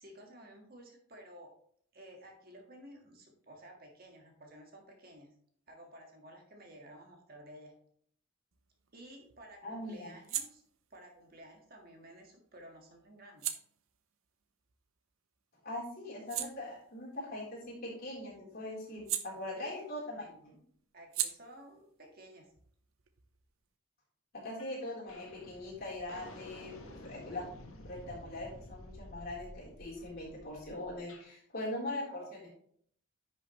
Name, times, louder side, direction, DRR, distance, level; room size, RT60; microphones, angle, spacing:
voice 1, 0.0-1.5 1.9-5.3 5.7-7.7 8.9-10.6 10.9-13.5 19.6-19.7 20.9-22.5 31.9-32.3, right 1 dB, 45° right, 1 dB, 1.7 m, -54 dB
sound 1, 8.5-15.4 15.8-20.0 20.3-23.7, right 11 dB, 80° right, 0.8 m, -44 dB
voice 2, 9.6-10.1 15.6-20.6 24.3-26.7 27.0-27.4 27.8-32.5, left 1 dB, 45° left, -5 dB, 3.7 m, -41 dB
sound 2, 24.6-24.8 25.1-31.3, left 1 dB, 80° left, 1.7 m, -51 dB
10.5 x 6.2 x 3.1 m, 0.63 s
head